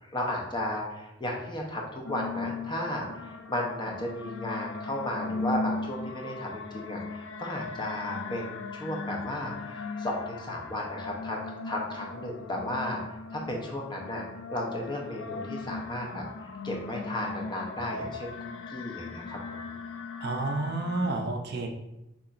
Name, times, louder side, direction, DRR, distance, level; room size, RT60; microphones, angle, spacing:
voice 1, 0.0-14.2 14.5-18.3 18.7-19.4, left 1 dB, 20° left, 0 dB, 0.7 m, -34 dB
sound 1, 2.0-21.2, left 4 dB, 60° left, 0.4 m, -38 dB
voice 2, 20.2-21.7, right 2 dB, 50° right, 4 dB, 0.5 m, -30 dB
6.8 x 2.8 x 2.5 m, 0.92 s
head